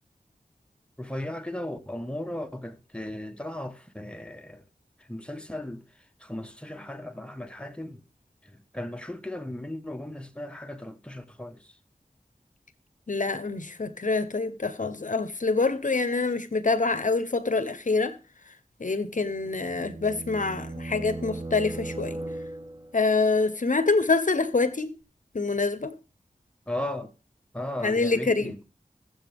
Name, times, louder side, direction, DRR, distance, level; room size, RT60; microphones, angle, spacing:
voice 1, 1.0-4.6 5.1-5.8 6.2-8.0 8.4-11.7 26.7-27.1 27.5-28.6, left 1 dB, 5° left, 1.3 m, -36 dB
voice 2, 13.1-18.1 18.8-22.2 22.9-24.9 25.3-25.9 27.8-28.5, left 3 dB, 60° left, 0.9 m, -26 dB
sound 1, 19.1-23.0, right 2 dB, 30° right, 1.3 m, -38 dB
21.0 x 7.7 x 3.5 m
wide cardioid pair, 60°, 15 cm